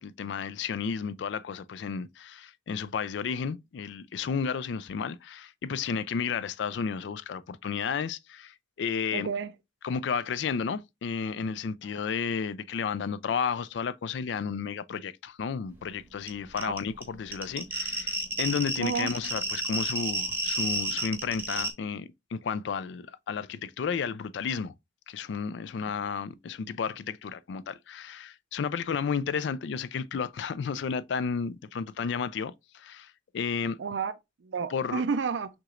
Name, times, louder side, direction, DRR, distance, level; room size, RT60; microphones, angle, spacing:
voice 1, 0.0-9.3 9.8-24.7 25.1-33.8 34.7-35.0, left 6 dB, 65° left, 0.3 m, -32 dB
voice 2, 9.1-9.5 11.8-12.1 16.6-16.8 18.8-19.1 25.9-26.2 33.8-34.1 34.4-35.5, right 5 dB, 70° right, 0.4 m, -32 dB
sound 1, 16.3-16.4 16.6-21.7, right 2 dB, 10° right, 0.8 m, -31 dB
6.1 x 2.9 x 2.4 m
head